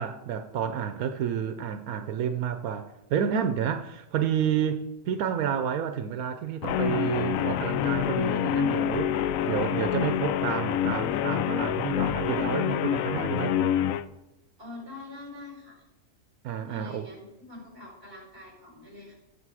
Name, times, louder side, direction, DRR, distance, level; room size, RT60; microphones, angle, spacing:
voice 1, 0.0-13.6 16.4-17.1, right 8 dB, 90° right, 8 dB, 1.2 m, -30 dB
Guitar, 6.6-14.0, left 10 dB, 75° left, 0.9 m, -27 dB
voice 2, 14.6-15.8 16.7-19.1, left 2 dB, 40° right, -1 dB, 4.4 m, -44 dB
16.5 x 6.8 x 4.8 m, 0.92 s
omnidirectional pair, 1.5 m